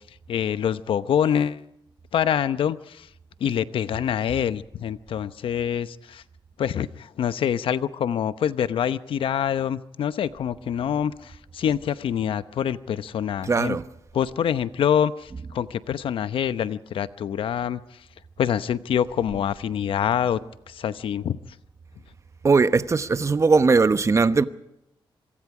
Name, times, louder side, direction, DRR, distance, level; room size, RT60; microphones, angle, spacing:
voice 1, 0.3-1.6 2.1-3.1 3.4-6.2 6.6-13.8 14.1-17.8 18.4-20.4 20.7-21.4, left 9 dB, 80° left, 0.8 m, -25 dB
voice 2, 13.4-13.8 22.4-24.5, right 4 dB, 35° right, 1.0 m, -19 dB
26.5 x 23.5 x 4.9 m
cardioid pair, 110°, 9 cm